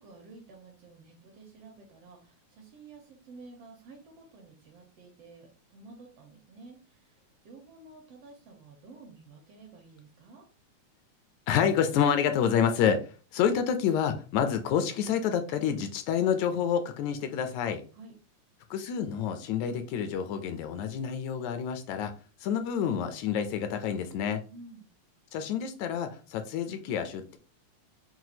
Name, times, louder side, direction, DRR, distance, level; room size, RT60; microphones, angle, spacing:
voice 1, 0.0-10.4 17.9-18.1 24.5-24.9, right 3 dB, 70° right, 1 dB, 1.6 m, -51 dB
voice 2, 11.5-17.8 18.7-22.1 22.4-24.4 25.3-27.4, left 8 dB, 80° left, 8 dB, 1.8 m, -28 dB
6.0 x 2.3 x 2.7 m, 0.37 s
omnidirectional pair, 3.4 m